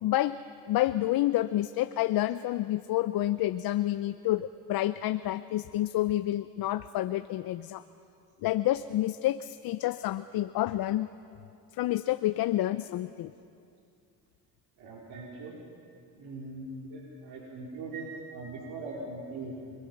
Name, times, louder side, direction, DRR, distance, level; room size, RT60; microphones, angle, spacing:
voice 1, 0.0-0.4 0.7-7.8 8.4-11.1 11.8-13.3, left 14 dB, 65° left, 12 dB, 0.7 m, -29 dB
voice 2, 14.8-15.6 16.1-19.7, right 2 dB, 65° right, -3 dB, 4.0 m, -41 dB
28.0 x 21.5 x 5.9 m, 2.6 s
supercardioid pair, 80°, 39 cm